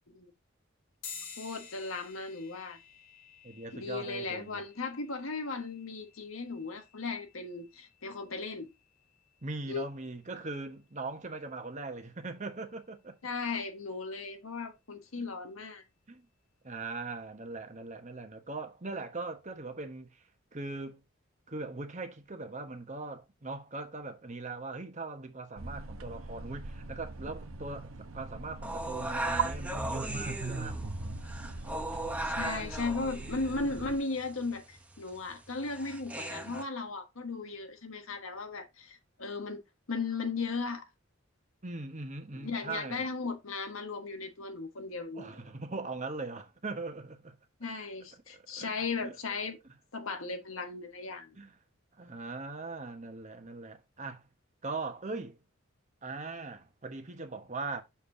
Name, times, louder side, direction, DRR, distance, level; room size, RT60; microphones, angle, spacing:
sound 1, 1.0-10.9, left 6 dB, 70° left, 2.6 m, -52 dB
voice 1, 1.4-2.8 3.7-8.7 9.7-9.9 13.2-15.8 32.2-39.6 39.9-40.9 42.3-45.3 47.6-49.6 49.9-51.4, left 3 dB, 85° left, 1.4 m, -36 dB
voice 2, 3.4-4.6 9.4-13.2 16.1-16.3 16.6-20.2 20.5-21.0 21.5-30.8 41.6-43.1 45.1-47.4 48.3-49.1 51.4-51.5 52.0-54.2 54.6-55.4 56.0-57.8, right 3 dB, 35° right, 1.2 m, -40 dB
sound 2, 25.6-34.0, right 4 dB, 90° right, 0.9 m, -39 dB
sound 3, 28.6-36.6, right 1 dB, 5° right, 0.9 m, -38 dB
7.1 x 6.7 x 2.7 m
head